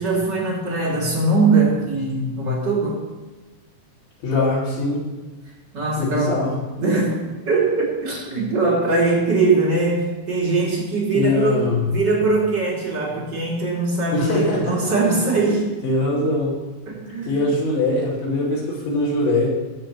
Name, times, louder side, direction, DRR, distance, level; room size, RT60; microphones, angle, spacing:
voice 1, 0.0-3.0 5.7-6.3 6.8-7.2 7.4-15.8 16.9-17.4, right 3 dB, 30° right, -4 dB, 2.3 m, -21 dB
voice 2, 4.2-5.0 6.0-6.6 11.1-11.9 14.1-14.9 15.8-16.5 17.2-19.5, left 2 dB, 65° left, -8 dB, 4.7 m, -22 dB
21.5 x 7.6 x 3.0 m, 1.3 s
omnidirectional pair, 5.6 m